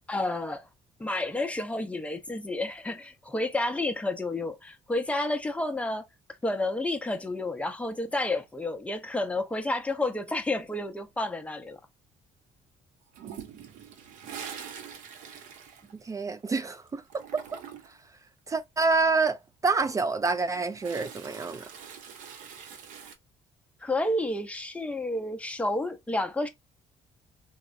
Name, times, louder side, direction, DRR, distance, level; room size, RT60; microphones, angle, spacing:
voice 1, 0.1-0.7 1.0-6.0 6.4-11.8 23.8-26.5, left 2 dB, 10° left, 0.6 m, -30 dB
Toilet flush, 13.1-16.6 16.9-18.1 20.1-23.2, right 7 dB, 80° right, 0.6 m, -44 dB
voice 2, 16.0-17.0 17.3-17.6 18.5-21.7, right 3 dB, 25° right, 0.3 m, -27 dB
3.5 x 2.1 x 2.5 m
cardioid pair, 95°, 13 cm